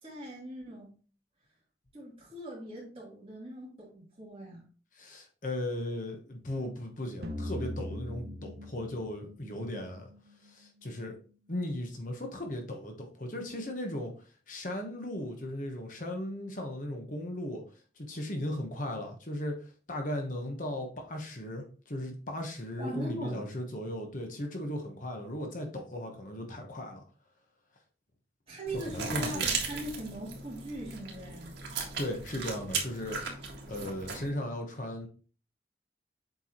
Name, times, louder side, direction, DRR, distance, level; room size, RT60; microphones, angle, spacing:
voice 1, 0.0-0.9 1.9-4.6 22.8-23.5 28.5-31.5, right 1 dB, 30° right, -5 dB, 3.1 m, -40 dB
voice 2, 4.9-10.1 10.4-11.1 11.5-14.1 14.5-17.6 18.0-27.0 28.7-29.5 32.0-33.2 33.7-35.1, left 1 dB, 45° left, 3 dB, 1.1 m, -37 dB
sound 1, 7.2-10.2, left 1 dB, 60° right, 0.8 m, -40 dB
sound 2, 28.7-34.3, right 5 dB, 80° right, 1.8 m, -37 dB
7.9 x 4.6 x 2.9 m, 0.38 s
head